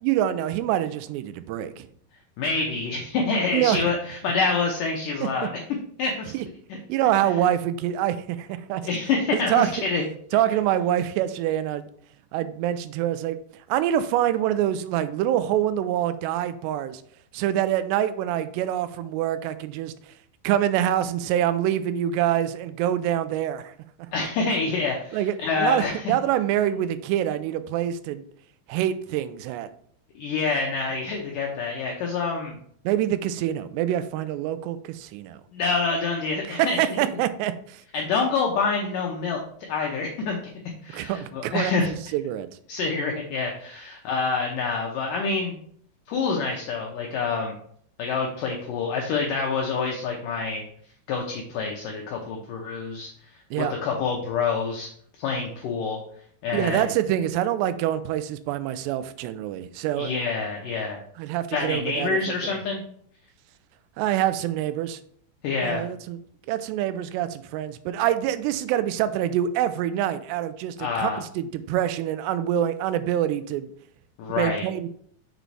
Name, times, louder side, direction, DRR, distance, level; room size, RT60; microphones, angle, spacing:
voice 1, 0.0-1.9 3.5-3.8 5.2-5.3 6.3-6.4 6.9-8.8 9.3-9.7 10.3-11.9 12.3-13.4 13.7-17.0 17.3-19.9 20.4-23.7 25.1-28.2 28.7-29.7 32.9-35.4 36.5-37.8 40.9-41.8 42.1-42.5 53.5-53.7 56.5-60.1 61.2-62.2 64.0-65.0 65.6-66.2 66.5-73.7 74.4-74.9, right 11 dB, 85° right, 13 dB, 2.7 m, -25 dB
voice 2, 2.4-5.5 6.0-6.3 6.7-6.8 8.8-10.0 24.1-26.1 30.2-32.6 35.5-36.8 37.9-39.4 39.7-40.4 40.8-41.9 42.7-45.6 46.1-47.5 48.0-50.6 51.1-53.1 53.6-54.9 55.2-56.0 56.4-56.9 60.0-61.0 61.5-62.8 65.4-65.9 70.8-71.2 74.2-74.7, left 4 dB, 85° left, 0 dB, 1.9 m, -27 dB
6.7 x 4.1 x 4.7 m, 0.62 s
omnidirectional pair, 4.8 m